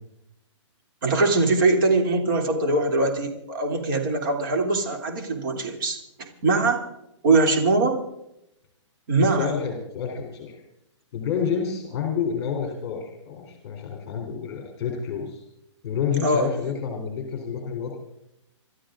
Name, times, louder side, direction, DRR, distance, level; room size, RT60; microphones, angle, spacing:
voice 1, 1.0-6.8 7.2-8.0 9.1-9.5 16.2-16.5, right 3 dB, 45° right, 3 dB, 3.2 m, -22 dB
voice 2, 9.3-10.6 11.1-15.4 15.8-17.9, left 7 dB, 35° left, 1 dB, 3.7 m, -29 dB
27.0 x 13.0 x 3.8 m, 0.83 s
hypercardioid pair, 165°, 16 cm